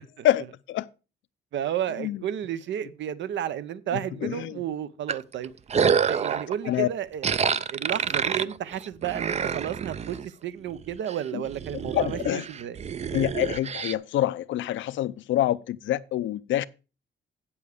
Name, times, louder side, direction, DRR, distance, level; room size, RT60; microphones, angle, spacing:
voice 1, 0.2-0.9 2.0-2.2 3.9-4.6 6.6-6.9 11.3-11.4 11.9-12.4 13.1-16.7, left 13 dB, 75° left, 0.5 m, -26 dB
voice 2, 1.5-5.5 5.9-12.8, right 10 dB, 70° right, 0.8 m, -32 dB
sound 1, 5.1-6.5 7.2-10.3 10.7-11.1 11.5-13.9, right 6 dB, 35° right, 0.5 m, -28 dB
8.3 x 7.2 x 5.0 m
cardioid pair, 90°, 20 cm